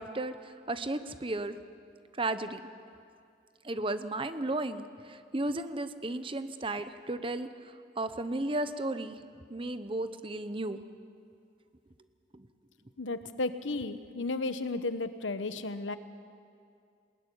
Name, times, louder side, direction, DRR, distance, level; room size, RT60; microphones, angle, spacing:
voice 1, 0.0-1.6 2.2-2.6 3.6-9.2 9.5-10.8 12.3-12.5, right 2 dB, 30° right, 11 dB, 0.9 m, -34 dB
voice 2, 13.0-16.0, left 3 dB, 80° left, 11 dB, 1.1 m, -33 dB
20.0 x 19.5 x 9.9 m, 2.4 s
head